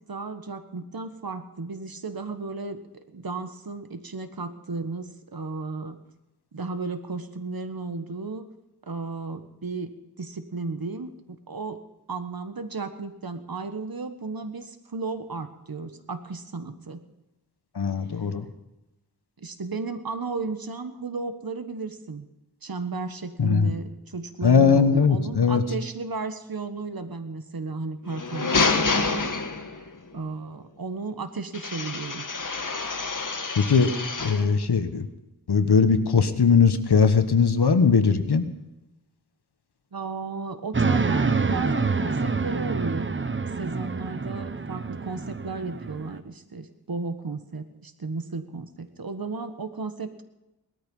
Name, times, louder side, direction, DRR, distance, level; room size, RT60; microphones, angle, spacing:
voice 1, 0.1-2.8 3.1-6.0 6.5-8.5 8.9-9.9 10.2-11.8 12.1-17.0 19.4-22.3 22.6-29.3 30.1-32.2 39.9-43.1 43.6-50.2, right 3 dB, 65° right, 9 dB, 1.5 m, -34 dB
voice 2, 17.7-18.5 23.4-23.7 24.4-25.6 33.6-33.9 34.2-35.1 35.5-38.5, left 5 dB, 85° left, 9 dB, 1.3 m, -20 dB
sound 1, 28.0-30.0 31.5-34.5, left 4 dB, 55° left, 1.6 m, -27 dB
sound 2, 40.7-46.2, right 4 dB, 30° right, 0.9 m, -27 dB
19.0 x 13.5 x 5.5 m, 0.97 s
wide cardioid pair, 85°, 38 cm